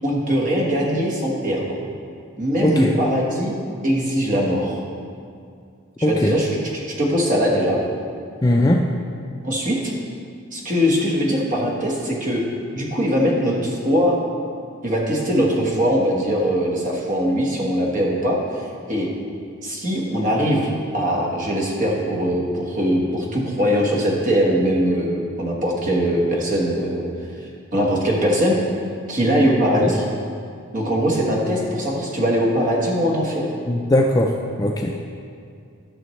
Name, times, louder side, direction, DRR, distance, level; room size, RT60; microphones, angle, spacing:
voice 1, 0.0-1.8 2.4-3.5 3.8-4.8 6.1-6.5 7.0-7.8 9.4-9.9 10.5-12.4 12.7-14.2 14.8-19.1 19.6-20.7 20.9-27.1 27.7-28.6 29.1-30.0 30.7-33.5, equal, 35° right, -3 dB, 1.3 m, -21 dB
voice 2, 2.6-2.9 6.0-6.3 8.4-8.8 29.8-29.9 33.7-34.9, left 1 dB, 15° left, 1 dB, 0.3 m, -19 dB
12.5 x 6.2 x 3.2 m, 2.3 s
head